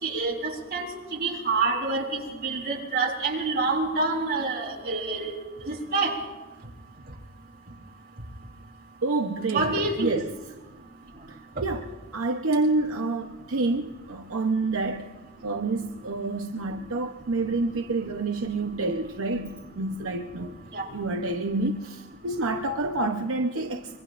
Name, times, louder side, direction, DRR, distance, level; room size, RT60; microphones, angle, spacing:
voice 1, 0.0-0.9 1.1-5.3 5.7-6.1 9.5-10.1 20.7-20.8, right 3 dB, 50° right, -2 dB, 3.9 m, -27 dB
voice 2, 9.0-10.3 11.3-11.9 12.1-15.2 15.4-20.5 20.9-24.0, right 2 dB, 75° right, 3 dB, 0.8 m, -28 dB
25.0 x 23.0 x 2.5 m, 1.2 s
head